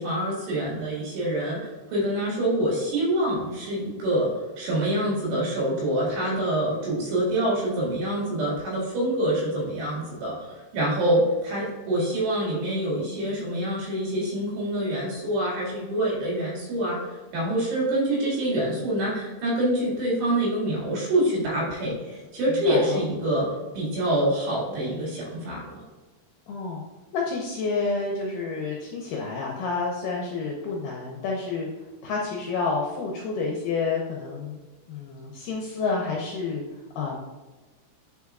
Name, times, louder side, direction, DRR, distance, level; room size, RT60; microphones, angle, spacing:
voice 1, 0.0-4.3 4.6-23.5 23.7-25.8, right 1 dB, 90° right, -5 dB, 4.2 m, -26 dB
voice 2, 22.5-23.0 26.5-26.8 27.1-31.7 32.0-34.6 34.9-36.6 37.0-37.2, left 4 dB, 80° left, -2 dB, 1.9 m, -29 dB
9.4 x 4.6 x 2.4 m, 1.2 s
omnidirectional pair, 4.7 m